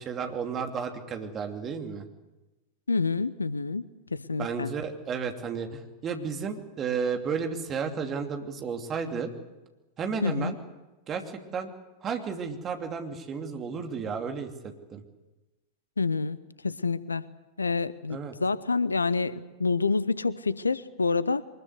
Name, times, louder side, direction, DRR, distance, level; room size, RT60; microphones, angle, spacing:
voice 1, 0.0-2.0 4.4-9.3 10.0-10.6 11.1-11.2 11.5-11.7 12.0-14.5 14.9-15.0 18.1-18.3, right 6 dB, 25° right, 4 dB, 2.8 m, -32 dB
voice 2, 2.9-4.7 10.2-10.5 16.0-16.4 16.6-17.2 17.6-21.4, left 4 dB, 75° left, 18 dB, 0.8 m, -28 dB
24.0 x 21.0 x 8.1 m, 1.1 s
figure-of-eight pair, 90°, 0 cm